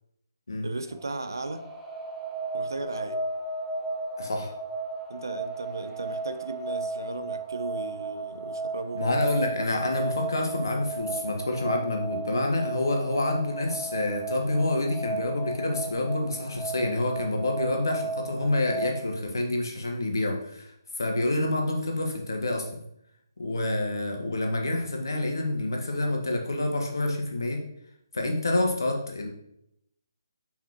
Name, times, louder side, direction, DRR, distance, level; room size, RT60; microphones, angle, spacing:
voice 1, 0.6-1.7 2.5-3.2 5.1-9.3 23.5-23.7, right 2 dB, 60° right, 10 dB, 0.7 m, -36 dB
sound 1, 0.9-19.1, right 3 dB, ahead, 0.6 m, -35 dB
voice 2, 4.2-4.5 8.9-20.7 21.0-22.7 23.4-27.6 28.1-29.3, left 2 dB, 60° left, 1 dB, 1.5 m, -28 dB
7.3 x 5.6 x 3.1 m, 0.77 s
figure-of-eight pair, 145°, 2 cm